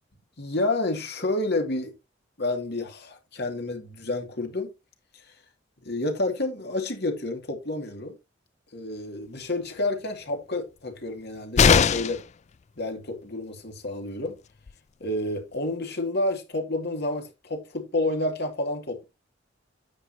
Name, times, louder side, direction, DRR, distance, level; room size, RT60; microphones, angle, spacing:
voice 1, 0.4-1.9 2.4-4.7 5.8-8.1 8.7-12.2 12.8-14.4 15.0-19.0, left 2 dB, 60° left, 2.5 m, -29 dB
sound 1, 11.6-12.3 14.3-14.4 14.7-14.8, left 6 dB, 35° left, 0.4 m, -19 dB
9.9 x 8.1 x 2.9 m
head